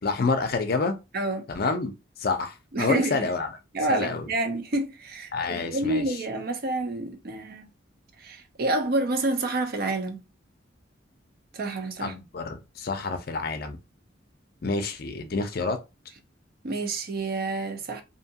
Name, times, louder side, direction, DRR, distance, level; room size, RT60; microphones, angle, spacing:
voice 1, 0.0-0.9 1.5-1.9 2.2-3.5 3.9-4.3 5.3-6.0 12.0-13.8 14.6-15.8, left 3 dB, 50° left, 0.5 m, -28 dB
voice 2, 1.1-1.5 2.7-3.3 3.7-7.7 8.2-10.2 11.5-12.1 16.6-18.0, right 2 dB, 50° right, 0.5 m, -28 dB
2.7 x 2.3 x 2.7 m
head